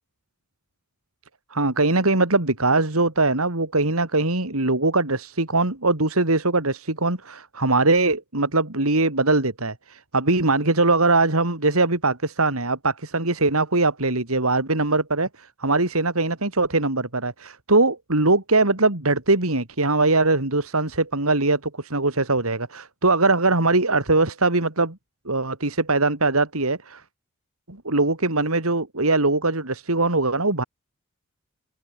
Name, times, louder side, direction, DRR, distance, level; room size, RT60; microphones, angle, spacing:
voice 1, 1.5-25.0 25.3-27.0 27.7-30.6, right 2 dB, 90° right, 3.6 m, -21 dB
head